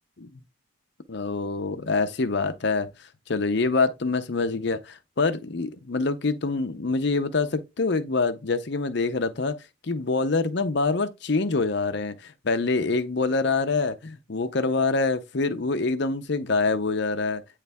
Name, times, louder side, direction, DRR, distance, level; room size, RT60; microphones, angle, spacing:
voice 1, 1.1-2.9 3.3-9.6 9.8-17.6, left 3 dB, 55° left, 0.7 m, -25 dB
9.3 x 3.2 x 3.4 m
head